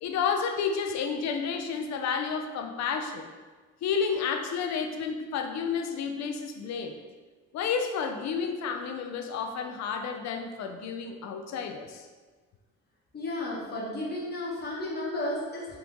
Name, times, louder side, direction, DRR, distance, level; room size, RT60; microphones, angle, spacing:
voice 1, 0.0-3.3 3.8-6.9 7.5-12.1, left 6 dB, 65° left, 5 dB, 0.5 m, -31 dB
voice 2, 13.1-15.8, left 1 dB, 35° left, -5 dB, 1.3 m, -33 dB
3.5 x 3.0 x 3.8 m, 1.4 s
cardioid pair, 90°, 30 cm